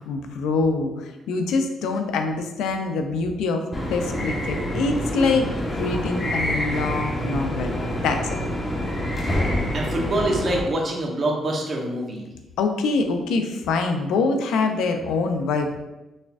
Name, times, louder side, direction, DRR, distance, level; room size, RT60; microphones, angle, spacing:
voice 1, 0.0-5.5 5.8-7.8 8.0-8.4 12.6-15.8, left 4 dB, 85° left, 5 dB, 0.4 m, -24 dB
sound 1, 3.7-10.6, equal, 25° left, 0.9 m, -26 dB
voice 2, 9.7-12.3, right 1 dB, 45° right, 0 dB, 0.9 m, -25 dB
4.2 x 3.4 x 2.4 m, 1.0 s
cardioid pair, 90°, 0 cm